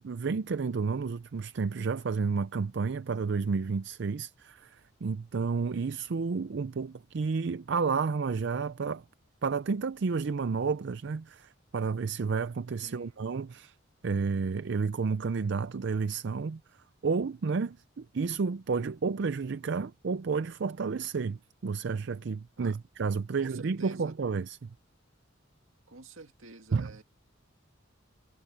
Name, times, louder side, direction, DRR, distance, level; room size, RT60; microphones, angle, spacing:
voice 1, 0.0-9.0 9.4-13.8 14.0-16.6 17.0-24.7 26.7-26.9, right 5 dB, 60° right, 0.4 m, -31 dB
voice 2, 12.8-13.2 22.6-22.8 23.4-24.1 25.9-27.0, right 3 dB, 80° right, 2.1 m, -48 dB
head